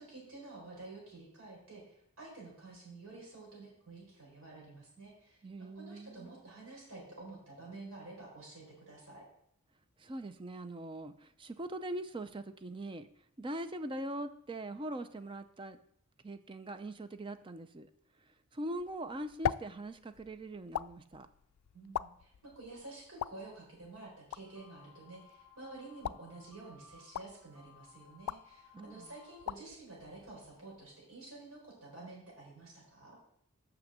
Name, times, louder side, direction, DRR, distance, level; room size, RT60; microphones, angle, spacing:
voice 1, 0.0-9.2 21.7-33.2, right 2 dB, 75° right, -3 dB, 4.3 m, -50 dB
voice 2, 5.4-6.3 10.0-13.1 13.4-15.8 16.2-17.9 18.5-21.3 28.7-29.1, right 1 dB, 25° right, 10 dB, 0.5 m, -42 dB
sound 1, 18.8-31.0, left 9 dB, 85° left, 0.3 m, -43 dB
sound 2, 24.4-29.4, left 5 dB, ahead, 2.4 m, -60 dB
6.2 x 6.1 x 7.4 m, 0.68 s
head